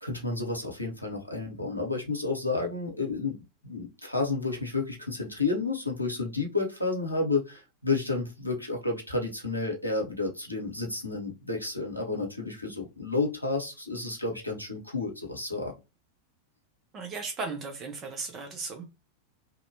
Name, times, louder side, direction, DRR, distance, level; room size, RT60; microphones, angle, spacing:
voice 1, 0.0-3.4 3.6-15.7, left 3 dB, 85° left, 0.7 m, -31 dB
voice 2, 16.9-18.8, right 4 dB, 30° right, 0.6 m, -36 dB
2.6 x 2.1 x 2.6 m
figure-of-eight pair, 90°, 0 cm